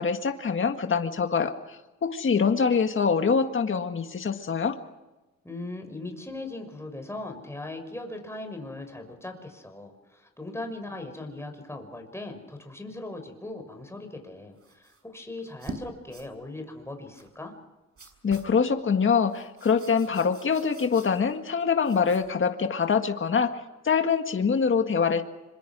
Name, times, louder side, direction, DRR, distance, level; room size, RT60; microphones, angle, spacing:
voice 1, 0.0-4.8 18.2-23.5 23.8-25.2, left 6 dB, 45° left, 7 dB, 1.9 m, -24 dB
voice 2, 5.4-17.5, left 2 dB, 10° left, 4 dB, 6.4 m, -39 dB
sound 1, 14.6-15.0 15.4-15.8 16.1-16.3 17.1-17.3 18.0-18.5 19.3-21.4 21.8-22.4, right 3 dB, 50° right, 6.3 m, -45 dB
26.0 x 22.5 x 6.3 m, 1.1 s
cardioid pair, 65°, 29 cm